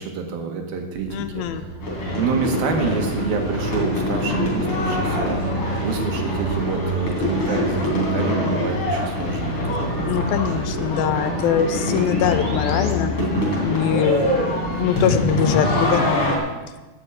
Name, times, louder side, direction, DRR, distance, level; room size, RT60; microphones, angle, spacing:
voice 1, 0.0-1.1 1.3-1.4 2.2-10.3 13.2-13.6, right 5 dB, 75° right, 3 dB, 3.4 m, -27 dB
sound 1, 1.0-12.9, right 2 dB, 55° right, 0.7 m, -35 dB
voice 2, 1.1-1.6 10.1-13.1 13.6-16.4, left 9 dB, 80° left, 9 dB, 2.7 m, -23 dB
sound 2, 1.8-16.4, left 1 dB, 35° left, 3.7 m, -24 dB
11.5 x 9.0 x 8.4 m, 1.2 s
omnidirectional pair, 4.3 m